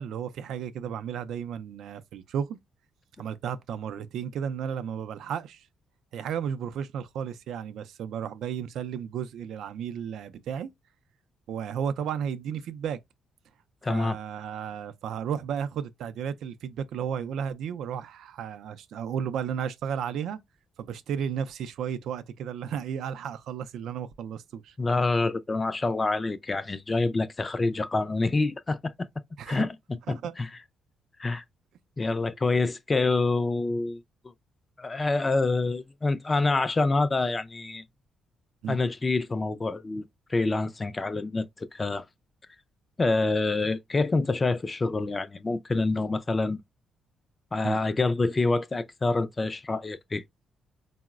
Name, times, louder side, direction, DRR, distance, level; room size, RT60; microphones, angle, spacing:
voice 1, 0.0-2.6 3.2-5.7 6.1-10.7 11.5-13.0 13.9-20.4 20.8-24.8 29.4-29.6 30.1-30.3 38.6-38.8 47.6-47.8, right 8 dB, 75° right, 0.3 m, -33 dB
voice 2, 13.8-14.2 24.8-28.9 29.5-29.7 30.1-30.5 31.2-31.4 32.0-34.0 34.8-37.8 38.7-40.0 40.3-42.0 43.0-46.6 47.5-50.2, left 3 dB, 25° left, 0.3 m, -26 dB
3.7 x 2.0 x 2.3 m
cardioid pair, 90°, 0 cm